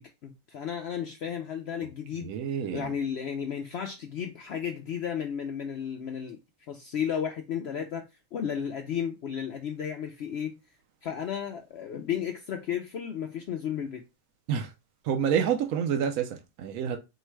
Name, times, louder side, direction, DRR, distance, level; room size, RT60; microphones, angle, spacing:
voice 1, 0.0-2.3 2.7-6.4 6.7-8.0 8.3-10.6 11.0-14.0, left 8 dB, 75° left, 0.6 m, -33 dB
voice 2, 2.2-2.9 14.5-14.7 15.0-17.0, right 8 dB, 70° right, 1.0 m, -28 dB
4.5 x 2.2 x 4.5 m
omnidirectional pair, 1.6 m